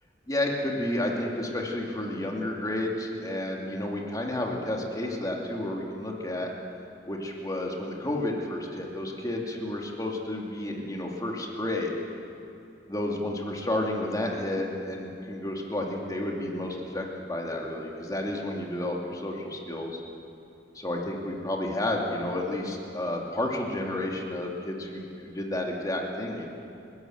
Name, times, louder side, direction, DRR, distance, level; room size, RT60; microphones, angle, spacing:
voice 1, 0.3-6.5 7.1-11.9 12.9-20.0 20.7-26.5, left 1 dB, 20° left, 0 dB, 2.6 m, -31 dB
30.0 x 12.0 x 7.9 m, 2.7 s
head